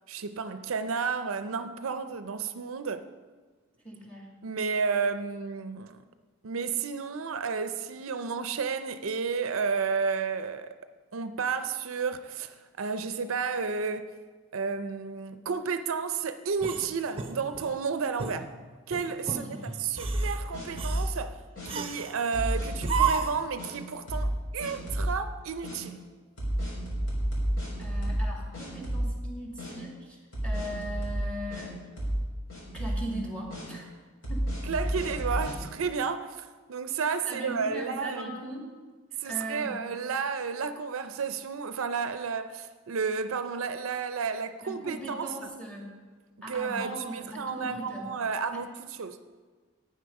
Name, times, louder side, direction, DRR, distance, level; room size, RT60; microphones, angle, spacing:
voice 1, 0.1-3.1 4.4-6.0 6.4-10.7 11.1-14.1 14.5-18.5 18.9-21.4 21.7-26.0 34.7-38.3 39.2-45.3 46.5-46.9 47.3-48.7 49.0-49.2, right 5 dB, 75° right, 0.5 m, -32 dB
voice 2, 3.8-4.3 19.3-19.8 27.8-31.8 32.7-33.8 34.3-34.5 37.3-38.7 39.2-39.8 44.6-46.0 46.4-48.1, right 1 dB, 5° left, 2.3 m, -39 dB
sound 1, 16.6-17.8 18.2-18.4 18.9-19.5 19.9-20.4 20.8-21.1 21.7-22.2 22.8-23.5, right 7 dB, 25° right, 0.7 m, -32 dB
sound 2, 20.0-21.1 21.6-21.7 22.3-23.1 23.6-23.7 24.1-24.3 24.6-25.1 25.6-25.8 26.4-28.3 28.5-29.3 29.6-29.7 30.3-31.6 32.0-32.2 32.5-33.0 33.5-33.6 34.2-35.6, right 1 dB, 65° left, 4.2 m, -30 dB
11.5 x 9.1 x 5.3 m
head